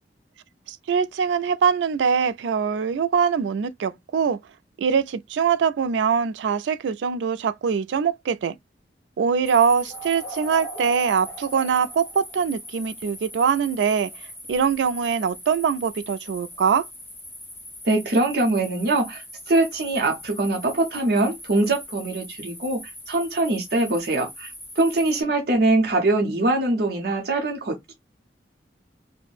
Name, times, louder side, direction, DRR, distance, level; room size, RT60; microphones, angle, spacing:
voice 1, 0.7-4.4 4.8-8.6 9.2-14.1 14.5-16.9, right 6 dB, 90° right, 0.3 m, -23 dB
sound 1, 9.5-25.2, equal, 10° left, 0.7 m, -40 dB
voice 2, 17.8-22.8 23.1-27.9, right 2 dB, 60° right, 0.7 m, -23 dB
2.5 x 2.1 x 3.1 m
head